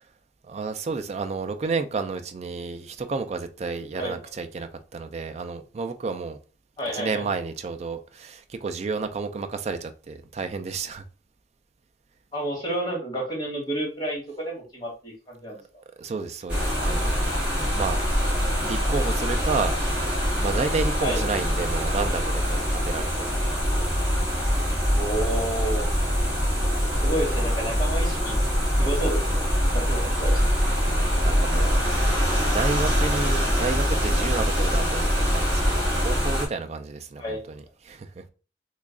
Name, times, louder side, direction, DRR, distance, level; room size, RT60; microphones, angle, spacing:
voice 1, 0.4-6.4 6.9-11.0 16.0-17.3 17.7-19.7 20.4-23.3 30.8-31.8 32.2-38.2, right 4 dB, 40° right, 0.4 m, -31 dB
voice 2, 6.8-7.3 12.3-15.6 21.0-21.2 24.9-25.9 26.8-28.4 28.8-30.4 37.2-37.4, right 1 dB, 25° left, 1.4 m, -30 dB
sound 1, 16.5-36.5, equal, 5° right, 1.8 m, -24 dB
3.1 x 2.3 x 3.6 m
head